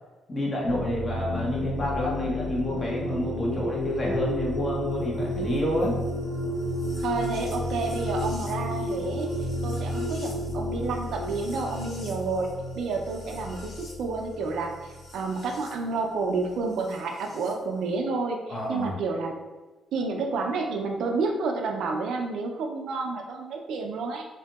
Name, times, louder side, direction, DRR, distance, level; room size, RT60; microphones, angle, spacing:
voice 1, 0.3-6.0 18.5-18.9, left 1 dB, 35° left, -3 dB, 0.8 m, -28 dB
sound 1, 0.6-15.7 16.9-17.5, left 1 dB, 60° left, 0.9 m, -32 dB
voice 2, 7.0-19.4 19.9-24.3, right 3 dB, 75° right, 3 dB, 0.4 m, -30 dB
2.7 x 2.6 x 2.3 m, 1.2 s
cardioid pair, 90°, 0 cm